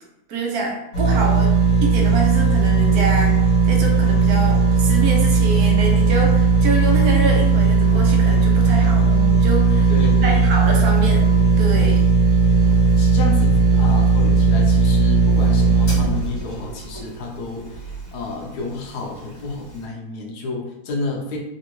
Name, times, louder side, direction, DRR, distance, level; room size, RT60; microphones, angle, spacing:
voice 1, 0.3-1.5 1.8-3.4 3.6-9.9 10.2-11.3 11.6-12.0, right 3 dB, 70° right, 0 dB, 1.2 m, -26 dB
sound 1, 0.9-18.1 18.6-18.7, right 4 dB, 60° left, 1.4 m, -16 dB
voice 2, 9.9-10.5 13.0-21.4, left 3 dB, 90° left, 0 dB, 1.2 m, -30 dB
3.3 x 2.4 x 2.9 m, 0.90 s
omnidirectional pair, 1.7 m